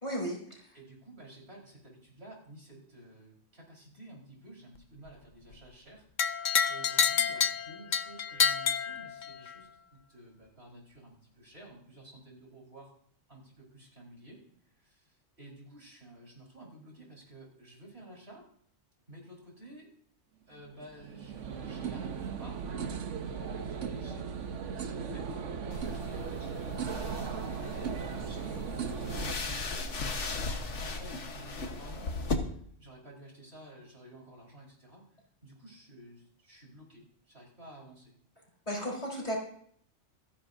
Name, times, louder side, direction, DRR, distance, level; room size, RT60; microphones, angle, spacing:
voice 1, 0.0-0.8 38.7-39.4, equal, 30° left, -3 dB, 4.3 m, -35 dB
voice 2, 0.7-12.9 13.3-18.4 19.1-19.9 20.5-22.6 23.2-24.3 24.7-27.1 27.4-35.0 35.4-38.1, right 1 dB, 55° right, -2 dB, 5.0 m, -52 dB
sound 1, 6.2-9.6, left 6 dB, 45° left, 0.7 m, -28 dB
sound 2, 20.6-29.3, right 6 dB, 75° right, 1.2 m, -37 dB
sound 3, 25.7-32.3, left 3 dB, 75° left, 1.6 m, -37 dB
27.0 x 10.5 x 2.7 m, 0.62 s
omnidirectional pair, 1.2 m